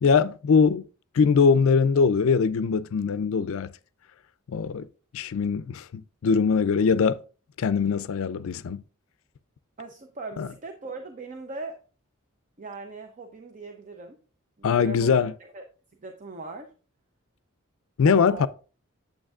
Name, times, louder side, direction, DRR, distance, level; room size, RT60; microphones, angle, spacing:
voice 1, 0.0-0.8 1.1-3.7 4.5-4.9 5.1-7.2 7.6-8.8 10.4-10.5 14.6-15.3 18.0-18.5, left 5 dB, 65° left, 0.4 m, -22 dB
voice 2, 9.8-11.8 12.6-14.2 14.6-15.1 15.4-15.6 16.0-16.7 18.1-18.5, right 3 dB, 35° right, 0.6 m, -39 dB
8.8 x 8.3 x 2.4 m
head